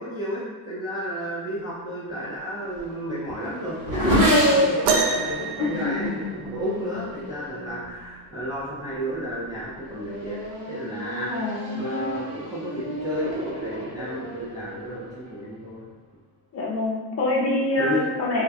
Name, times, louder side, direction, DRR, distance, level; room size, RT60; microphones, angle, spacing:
voice 1, 0.0-4.8 5.1-10.4 10.7-11.3 11.7-15.9 17.8-18.1, equal, 10° right, -10 dB, 0.5 m, -32 dB
Race car auto racing / Accelerating revving vroom, 2.2-8.1 8.9-9.3 9.7-15.6, equal, 40° right, 1.2 m, -28 dB
sound 1, 4.9-6.8 8.4-8.5 9.3-9.5 10.5-10.6, right 5 dB, 75° right, 0.5 m, -27 dB
voice 2, 5.6-5.9 11.3-11.8 16.5-18.4, left 2 dB, 35° left, -3 dB, 0.6 m, -25 dB
2.4 x 2.3 x 4.0 m, 1.4 s
cardioid pair, 165°, 45 cm